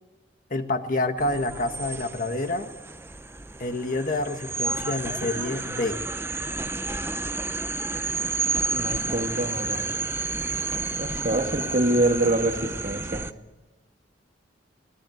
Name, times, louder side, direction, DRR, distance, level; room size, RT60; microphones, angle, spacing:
voice 1, 0.5-2.7 3.6-6.0, left 2 dB, 45° left, 7 dB, 1.6 m, -28 dB
sound 1, 1.2-13.3, right 3 dB, 15° right, 0.6 m, -31 dB
voice 2, 8.7-10.0 10.9-13.2, right 1 dB, 45° right, 4 dB, 2.0 m, -25 dB
24.5 x 18.0 x 7.9 m, 1.1 s
head